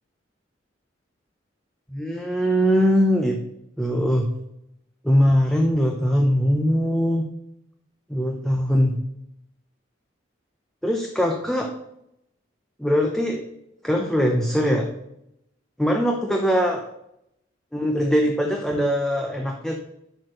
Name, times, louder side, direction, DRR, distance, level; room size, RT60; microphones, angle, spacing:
voice 1, 1.9-3.4 3.8-4.3 5.0-7.3 8.1-9.0 10.8-11.7 12.8-13.4 13.8-14.9 15.8-16.9 17.7-19.8, equal, ahead, 2 dB, 0.6 m, -21 dB
10.0 x 4.4 x 6.5 m, 0.82 s
head